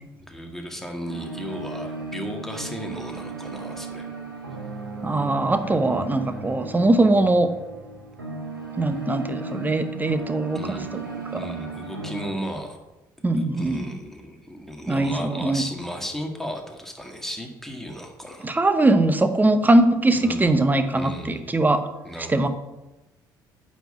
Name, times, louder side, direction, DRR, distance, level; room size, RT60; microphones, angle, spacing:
voice 1, 0.3-4.1 10.5-10.9 11.4-12.8 13.2-18.5 20.1-20.6 20.9-21.6 22.0-22.5, equal, 5° left, 3 dB, 1.9 m, -35 dB
sound 1, 1.0-12.3, right 3 dB, 90° right, 1.4 m, -35 dB
voice 2, 5.0-7.5 8.8-11.0 11.3-11.4 13.2-13.9 14.9-15.6 18.4-21.9 22.3-22.5, right 2 dB, 15° right, 10 dB, 0.9 m, -21 dB
9.1 x 4.3 x 7.1 m, 1.0 s
figure-of-eight pair, 50°, 11 cm